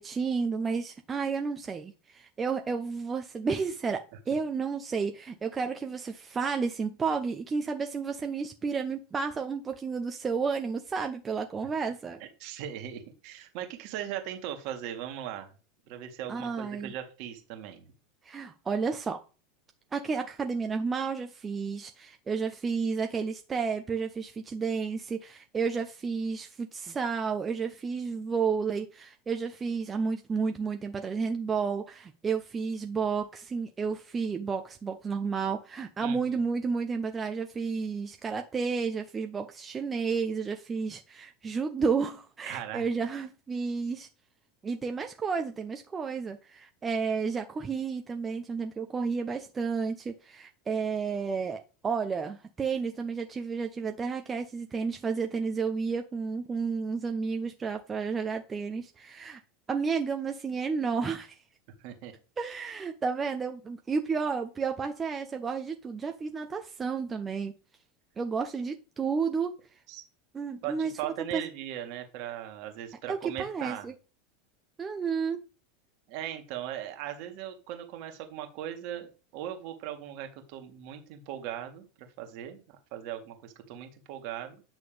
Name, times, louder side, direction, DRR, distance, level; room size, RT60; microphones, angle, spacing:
voice 1, 0.0-4.0 4.3-12.2 16.3-16.9 18.2-19.2 19.9-44.1 44.6-59.4 59.7-61.4 62.4-67.5 68.2-69.5 70.3-70.9 71.3-71.4 73.1-73.9 74.8-75.4, right 5 dB, 25° right, 0.9 m, -31 dB
voice 2, 12.4-15.5 15.9-17.9 36.0-36.2 42.5-42.8 61.8-62.1 69.9-70.0 70.6-73.9 76.1-84.6, right 11 dB, 55° right, 1.9 m, -39 dB
9.4 x 6.2 x 3.5 m
hypercardioid pair, 85°, 0 cm